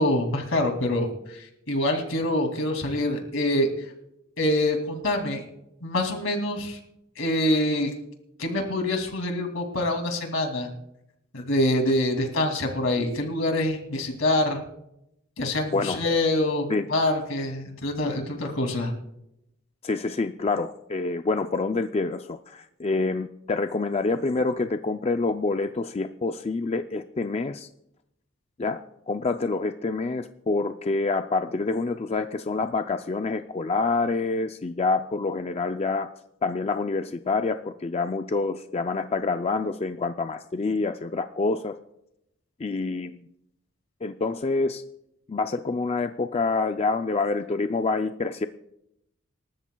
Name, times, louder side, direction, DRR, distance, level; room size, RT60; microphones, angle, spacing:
voice 1, 0.0-3.7 4.4-5.4 5.8-6.8 7.2-7.9 8.4-10.7 11.3-14.6 15.4-18.9, left 1 dB, 75° left, 3 dB, 2.6 m, -25 dB
voice 2, 19.8-27.7 28.6-28.8 29.1-36.1 36.4-41.8 42.6-43.2 44.0-44.8 45.3-48.5, left 3 dB, 30° left, 8 dB, 0.4 m, -27 dB
27.0 x 13.5 x 2.3 m, 0.81 s
head